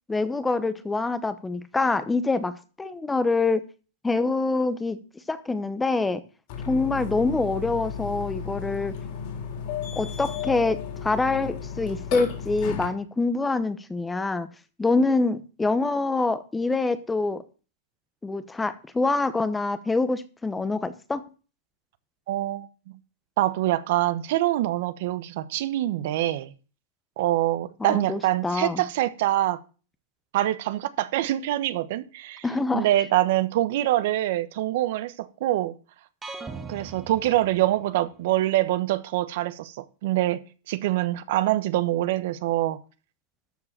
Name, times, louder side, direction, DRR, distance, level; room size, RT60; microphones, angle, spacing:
voice 1, 0.1-3.6 4.0-5.0 5.3-6.2 6.7-8.9 10.0-14.5 14.8-17.4 18.2-21.3 27.8-28.8 32.4-32.9, left 3 dB, 10° left, 0.8 m, -25 dB
Burping eructation, 6.5-12.9, left 7 dB, 55° left, 3.6 m, -34 dB
voice 2, 22.3-22.7 23.4-26.5 27.2-29.6 30.3-32.4 32.7-35.7 36.7-40.4 40.7-42.8, right 15 dB, 60° right, 1.0 m, -25 dB
sound 1, 36.2-38.2, right 4 dB, 15° right, 1.7 m, -40 dB
13.0 x 4.8 x 7.4 m
hypercardioid pair, 140°, 0 cm